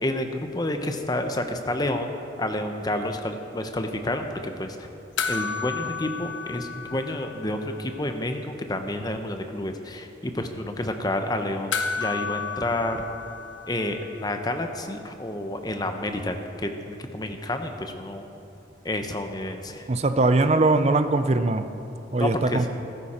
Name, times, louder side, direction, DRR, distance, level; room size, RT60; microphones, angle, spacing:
voice 1, 0.0-2.1 2.4-4.9 5.3-13.0 13.7-18.3 18.8-19.9 22.1-22.7, left 1 dB, 20° left, 6 dB, 0.8 m, -29 dB
sound 1, 5.2-7.8 8.1-8.2 11.7-14.3 16.5-16.6, left 5 dB, 85° left, 1.0 m, -32 dB
voice 2, 19.9-21.7 22.1-22.7, right 2 dB, 35° right, 9 dB, 0.5 m, -21 dB
15.0 x 13.5 x 4.4 m, 2.7 s
head